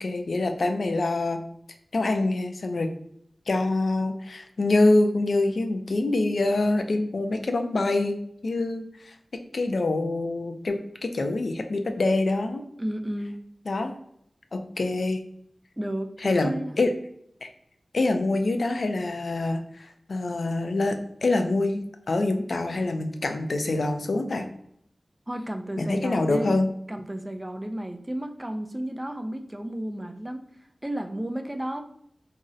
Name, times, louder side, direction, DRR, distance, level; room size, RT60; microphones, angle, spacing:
voice 1, 0.0-1.4 1.9-2.9 3.5-8.2 8.4-9.1 9.5-12.6 13.7-13.9 14.5-15.2 16.2-16.9 17.4-17.5 17.9-21.8 22.1-24.5 25.8-26.7, left 2 dB, 75° left, 6 dB, 0.3 m, -25 dB
voice 2, 12.8-13.4 15.8-16.8 25.3-26.6 26.9-30.4 30.8-31.8, right 1 dB, 15° right, 5 dB, 0.3 m, -32 dB
2.6 x 2.0 x 3.6 m, 0.70 s
wide cardioid pair, 85°, 0 cm